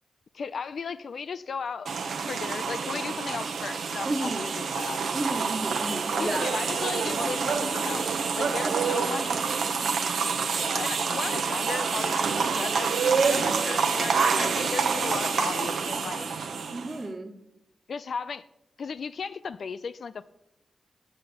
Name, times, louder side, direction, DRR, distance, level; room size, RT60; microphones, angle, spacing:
voice 1, 0.3-1.9 2.3-5.0 6.2-9.4 10.7-12.9 13.2-16.3 17.9-18.4 18.8-20.3, left 5 dB, 70° left, 13 dB, 0.4 m, -35 dB
sound 1, 1.9-17.0, right 5 dB, 90° right, 0.8 m, -27 dB
voice 2, 4.0-4.4 5.1-6.5 8.6-9.1 16.7-17.3, right 2 dB, 35° right, 3 dB, 1.4 m, -33 dB
7.7 x 7.6 x 6.8 m, 0.85 s
wide cardioid pair, 95°, 0 cm